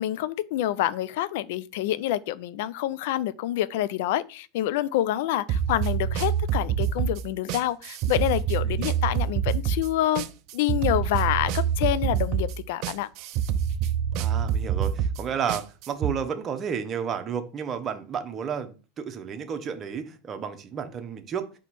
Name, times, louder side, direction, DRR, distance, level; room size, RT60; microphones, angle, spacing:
voice 1, 0.0-10.3 10.5-13.1, left 13 dB, 65° left, 0.3 m, -27 dB
sound 1, 5.5-16.1, right 8 dB, 55° right, 0.3 m, -26 dB
voice 2, 14.1-21.6, right 7 dB, 35° right, 0.8 m, -32 dB
4.2 x 2.9 x 4.2 m
hypercardioid pair, 90°, 0 cm